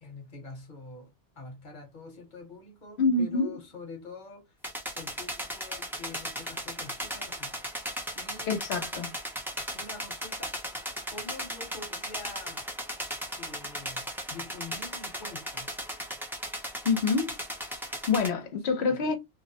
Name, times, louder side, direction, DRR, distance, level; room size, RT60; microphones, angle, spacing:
voice 1, 0.0-4.6 4.9-7.7 8.1-8.6 9.7-10.6 11.1-12.7 13.4-15.7 18.4-19.1, left 3 dB, 50° left, 0.9 m, -46 dB
voice 2, 3.0-3.6 8.5-9.1 16.8-17.4 18.1-19.2, left 4 dB, 85° left, 0.9 m, -26 dB
sound 1, 4.6-18.3, equal, 5° right, 0.4 m, -37 dB
2.5 x 2.0 x 2.7 m
omnidirectional pair, 1.1 m